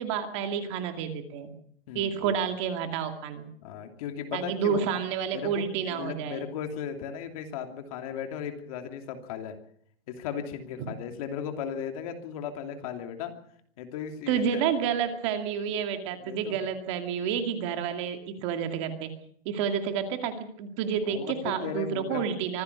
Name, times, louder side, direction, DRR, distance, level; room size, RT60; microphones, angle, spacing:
voice 1, 0.0-1.5 1.9-3.5 4.3-6.5 10.8-10.9 14.3-19.1 19.5-22.6, right 7 dB, 30° right, 6 dB, 2.3 m, -30 dB
voice 2, 1.9-2.3 3.6-4.8 5.3-9.6 10.1-13.4 13.8-14.6 16.2-16.6 21.1-22.3, left 8 dB, 35° left, 5 dB, 2.8 m, -36 dB
25.0 x 16.0 x 6.8 m, 0.65 s
hypercardioid pair, 175°, 31 cm